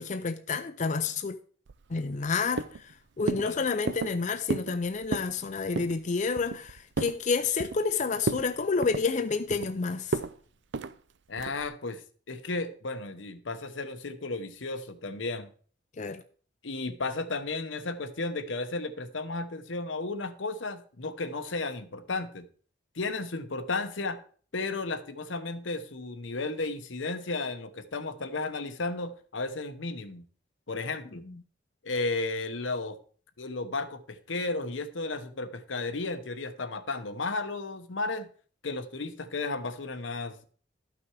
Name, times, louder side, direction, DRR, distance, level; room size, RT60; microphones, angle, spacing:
voice 1, 0.0-1.4 1.9-2.9 3.2-10.2 16.0-16.2 31.3-31.4, left 4 dB, 40° left, 0.5 m, -29 dB
sound 1, 1.7-2.3 2.6-2.9 3.3-3.5 3.9-4.2 4.5-4.8 5.0-5.3 5.7-6.0 6.4-7.2 7.6-7.9 8.2-8.5 8.8-9.7 10.1-10.3 10.7-10.9 11.4-11.7, right 4 dB, 65° right, 0.5 m, -32 dB
voice 2, 11.3-12.0 12.3-15.5 16.6-22.5 22.9-24.2 24.5-30.3 30.7-31.3 31.8-33.0 33.4-38.3 38.6-40.5, left 3 dB, 80° left, 1.0 m, -34 dB
12.5 x 6.0 x 4.7 m
head